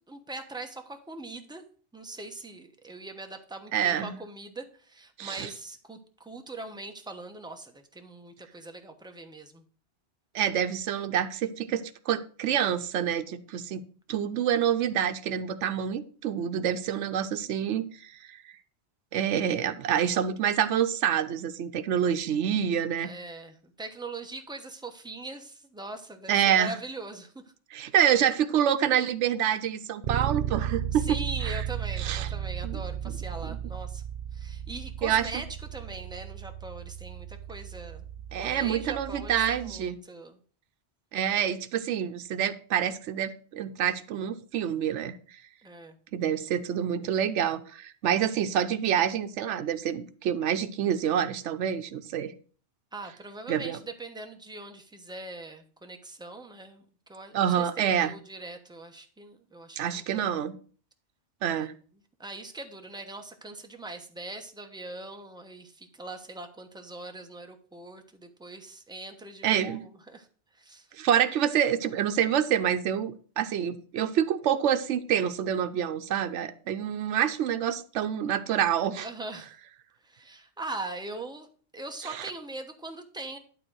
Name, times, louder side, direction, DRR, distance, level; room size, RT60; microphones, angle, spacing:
voice 1, 0.0-1.6 1.9-9.6 23.0-27.4 30.9-34.0 34.3-35.5 35.7-38.0 38.4-40.4 45.6-46.0 52.9-56.8 57.1-60.3 61.5-61.7 62.2-70.3 70.5-70.9 79.0-79.5 80.0-81.5 81.7-83.4, right 2 dB, 5° right, 4 dB, 0.9 m, -41 dB
voice 2, 3.7-4.2 5.2-5.5 10.3-13.8 14.1-18.4 19.1-23.1 26.3-26.8 27.7-31.2 31.4-31.6 32.0-32.3 32.6-32.8 33.1-33.2 33.4-33.6 35.0-35.3 38.3-40.0 41.1-45.2 46.1-52.3 53.5-53.8 57.3-58.1 59.8-60.6 61.4-61.7 69.4-69.8 71.0-79.1 82.0-82.3, right 9 dB, 80° right, 9 dB, 1.0 m, -27 dB
Bass guitar, 30.0-39.9, right 10 dB, 60° right, 0.5 m, -35 dB
11.5 x 3.8 x 6.2 m, 0.43 s
omnidirectional pair, 1.2 m